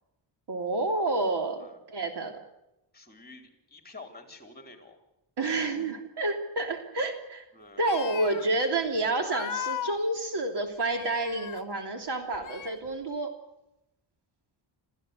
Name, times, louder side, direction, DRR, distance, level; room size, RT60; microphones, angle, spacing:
voice 1, 0.5-2.4 5.4-7.4 7.8-13.3, right 2 dB, 60° right, 5 dB, 3.3 m, -29 dB
voice 2, 2.9-5.0 7.5-8.2 8.5-8.8, left 3 dB, 20° left, 5 dB, 3.9 m, -50 dB
sound 1, 7.8-8.5 9.2-10.0 10.8-11.6 12.3-12.9, left 9 dB, 45° left, 0.9 m, -37 dB
27.0 x 15.0 x 8.3 m, 0.89 s
wide cardioid pair, 110°, 45 cm